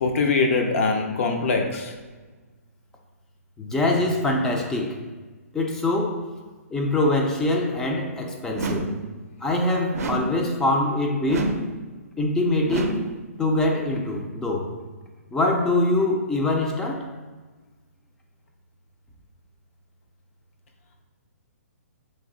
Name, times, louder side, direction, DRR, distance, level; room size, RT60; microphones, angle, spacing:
voice 1, 0.0-1.9, left 4 dB, 55° left, 3 dB, 0.6 m, -22 dB
voice 2, 3.6-5.0 5.5-6.3 6.7-9.0 9.4-11.6 12.2-13.0 13.4-14.7 15.3-17.1, left 2 dB, 5° left, 1 dB, 0.3 m, -24 dB
sound 1, 8.5-9.1 9.9-10.5 11.3-11.8 12.7-13.2, right 3 dB, 75° right, 0.5 m, -29 dB
3.1 x 2.6 x 3.7 m, 1.3 s
hypercardioid pair, 150°, 8 cm